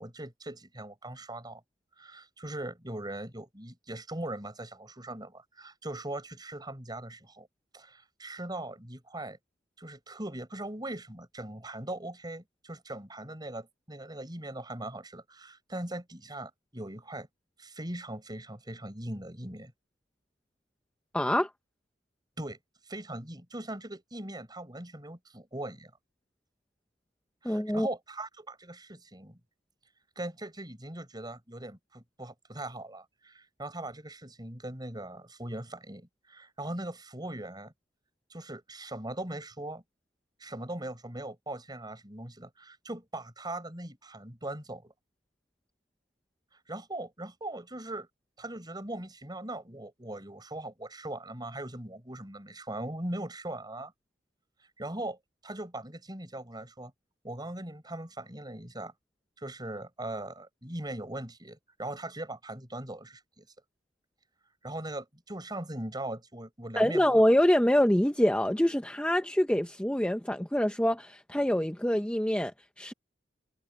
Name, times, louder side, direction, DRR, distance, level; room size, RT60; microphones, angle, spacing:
voice 1, 0.0-1.6 2.0-7.5 7.7-9.4 9.8-17.3 17.6-19.7 22.4-22.6 22.9-25.9 27.4-29.4 30.2-37.7 38.3-39.8 40.4-44.9 46.5-48.1 48.4-53.9 54.6-56.9 57.2-58.9 59.4-63.5 64.6-67.2, right 1 dB, 25° right, 6.0 m, -40 dB
voice 2, 21.1-21.5 27.4-27.9 66.8-72.5 72.8-72.9, equal, 5° left, 0.8 m, -25 dB
head